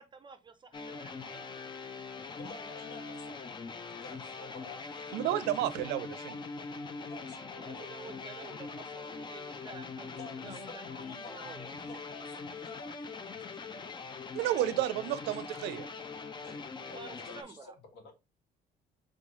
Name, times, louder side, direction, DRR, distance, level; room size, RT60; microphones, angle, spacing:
voice 1, 0.0-1.8 7.5-10.8 11.3-11.6 16.9-17.7, right 4 dB, 25° right, 0.6 m, -50 dB
sound 1, 0.7-17.4, left 4 dB, 25° left, 0.5 m, -42 dB
voice 2, 2.4-3.5 3.9-5.3 7.0-8.3 10.2-13.8 14.5-14.8 16.4-18.1, left 3 dB, 80° left, 1.5 m, -51 dB
voice 3, 5.1-6.4 14.3-15.9, right 13 dB, 90° right, 0.5 m, -31 dB
3.8 x 3.7 x 3.0 m
cardioid pair, 110°, 17 cm